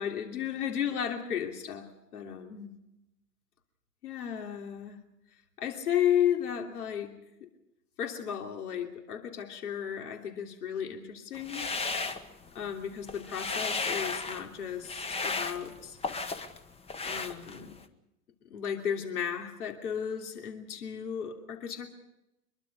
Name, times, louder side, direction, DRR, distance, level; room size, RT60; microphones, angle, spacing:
voice 1, 0.0-2.7 4.0-5.0 5.6-7.5 8.0-11.7 12.5-16.0 17.0-17.8 18.5-21.9, left 9 dB, 70° left, 3 dB, 3.2 m, -34 dB
sound 1, 11.3-12.7 13.0-14.5 14.8-16.6 16.9-17.8, left 4 dB, 15° left, 1.2 m, -34 dB
24.0 x 22.0 x 5.4 m, 0.89 s
hypercardioid pair, 105°, 46 cm